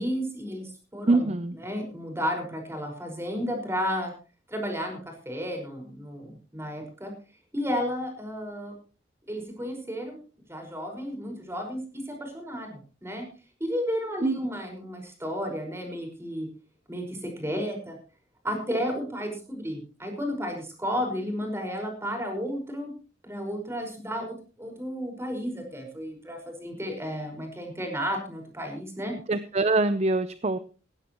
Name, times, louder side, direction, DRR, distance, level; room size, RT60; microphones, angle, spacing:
voice 1, 0.0-1.3 1.6-4.1 4.5-7.1 7.5-8.7 9.3-10.2 10.5-13.2 13.6-16.5 16.9-18.0 18.4-22.9 23.2-29.1, equal, 15° right, 3 dB, 5.3 m, -32 dB
voice 2, 1.1-1.5 14.2-14.3 29.3-30.6, right 2 dB, 35° right, 12 dB, 0.7 m, -24 dB
18.0 x 16.0 x 3.1 m, 0.35 s
head